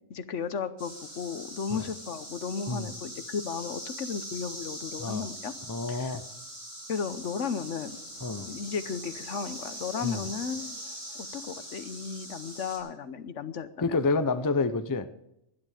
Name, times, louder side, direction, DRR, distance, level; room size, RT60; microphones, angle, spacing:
voice 1, 0.1-5.5 5.9-6.2 6.9-8.0 8.5-10.8 11.1-14.0, left 6 dB, 70° left, 12 dB, 1.2 m, -35 dB
sound 1, 0.8-12.8, equal, 30° right, 4.8 m, -42 dB
voice 2, 5.7-6.2 8.2-8.5 10.0-10.3 13.8-15.1, left 3 dB, 20° left, 11 dB, 0.6 m, -28 dB
sound 2, 7.1-12.6, right 2 dB, 90° right, 8.1 m, -57 dB
20.0 x 11.0 x 5.0 m, 0.83 s
omnidirectional pair, 1.3 m